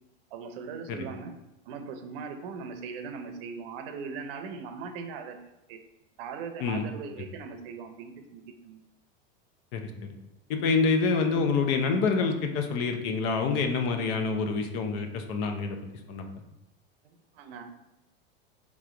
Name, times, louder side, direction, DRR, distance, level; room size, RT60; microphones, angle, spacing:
voice 1, 0.3-1.3 1.7-5.8 6.2-8.8 17.0-17.6, right 5 dB, 65° right, 6 dB, 0.7 m, -40 dB
voice 2, 9.7-10.1 10.5-15.8 16.1-16.2, left 4 dB, 60° left, 5 dB, 0.7 m, -27 dB
3.6 x 3.1 x 3.8 m, 0.96 s
supercardioid pair, 120°, 31 cm